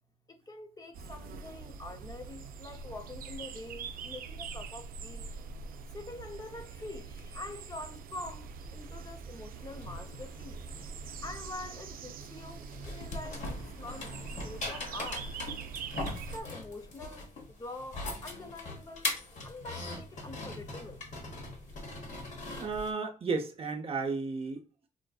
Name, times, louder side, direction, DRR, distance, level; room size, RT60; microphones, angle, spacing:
voice 1, 0.3-5.3 5.9-10.6 11.2-15.5 16.0-21.0, left 2 dB, 25° left, 0.6 m, -45 dB
sound 1, 0.9-16.4, right 5 dB, 85° right, 0.4 m, -43 dB
sound 2, 9.5-22.9, left 2 dB, 55° left, 1.0 m, -41 dB
voice 2, 22.6-24.6, right 4 dB, 40° right, 0.6 m, -33 dB
4.4 x 2.5 x 2.3 m
wide cardioid pair, 125°, 14 cm